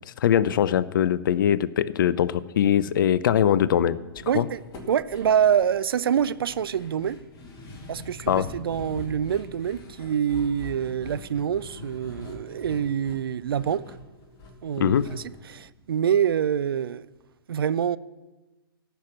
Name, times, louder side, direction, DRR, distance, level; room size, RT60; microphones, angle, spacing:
voice 1, 0.2-4.0 4.3-4.5 8.3-8.5 14.8-15.1, left 9 dB, 55° left, 0.6 m, -21 dB
sound 1, 4.2-16.4 16.7-16.8 17.2-17.3, left 2 dB, 30° left, 2.4 m, -44 dB
voice 2, 4.3-4.6 4.9-7.2 7.9-13.8 14.6-17.1 17.5-18.0, right 8 dB, 65° right, 0.5 m, -26 dB
14.5 x 6.1 x 7.2 m
figure-of-eight pair, 115°, 13 cm